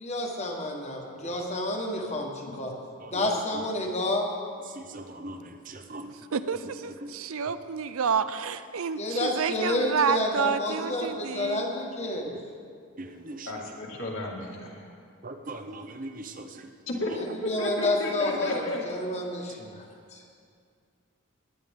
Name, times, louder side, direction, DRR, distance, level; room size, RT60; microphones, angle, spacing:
voice 1, 0.0-2.7 3.1-4.3 9.0-12.3 17.2-19.6 20.1-20.2, left 1 dB, 30° left, 1 dB, 1.4 m, -29 dB
voice 2, 3.0-3.3 4.8-6.1 7.0-7.1 13.0-13.5 15.2-16.7, right 2 dB, 35° right, 7 dB, 0.7 m, -40 dB
voice 3, 6.3-11.6, right 6 dB, 75° right, 12 dB, 0.5 m, -29 dB
voice 4, 13.5-14.9 16.9-18.8, left 2 dB, 65° left, -2 dB, 2.1 m, -32 dB
18.0 x 10.5 x 3.6 m, 2.2 s
head